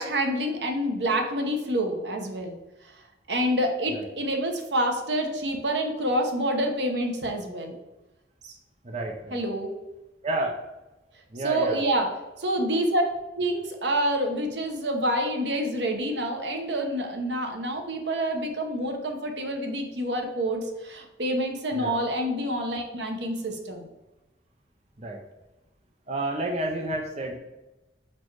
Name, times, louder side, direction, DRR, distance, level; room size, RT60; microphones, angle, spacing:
voice 1, 0.0-2.6 3.3-7.8 9.3-9.7 11.4-12.1 12.4-13.0 13.4-23.9, right 1 dB, 75° right, 4 dB, 1.0 m, -27 dB
voice 2, 8.8-9.4 10.2-10.6 11.3-11.8 21.7-22.0 25.0-25.2 26.1-27.4, right 1 dB, 40° right, 2 dB, 0.7 m, -30 dB
5.8 x 4.4 x 4.7 m, 1.0 s
head